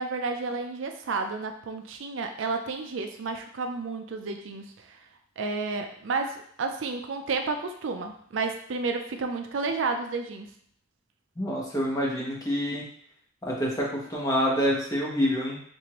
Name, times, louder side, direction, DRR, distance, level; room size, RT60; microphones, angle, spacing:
voice 1, 0.0-5.0 5.4-10.5, right 4 dB, 70° right, 5 dB, 0.4 m, -31 dB
voice 2, 11.4-12.9 13.4-15.6, equal, 20° left, -3 dB, 0.9 m, -27 dB
4.7 x 2.5 x 2.9 m, 0.62 s
head